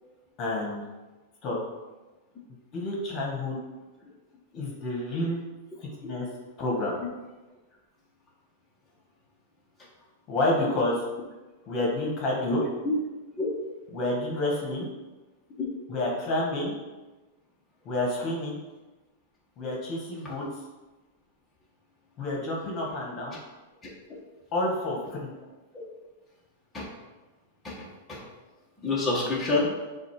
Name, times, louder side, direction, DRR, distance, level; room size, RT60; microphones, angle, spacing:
voice 1, 0.4-0.8 1.4-1.6 2.7-3.6 4.5-5.4 5.8-6.3 6.6-7.0 10.3-11.0 11.7-12.6 13.9-14.9 15.9-16.7 17.8-18.6 19.6-20.4 22.2-23.4 24.5-25.3, left 1 dB, 40° left, -2 dB, 1.7 m, -29 dB
voice 2, 12.6-12.9 13.4-13.5 15.6-15.7 23.8-23.9 25.7-25.8 26.7-26.9 27.6-28.2 28.8-29.7, left 3 dB, 15° left, -6 dB, 1.6 m, -28 dB
6.9 x 2.8 x 4.9 m, 1.2 s
hypercardioid pair, 115°, 0 cm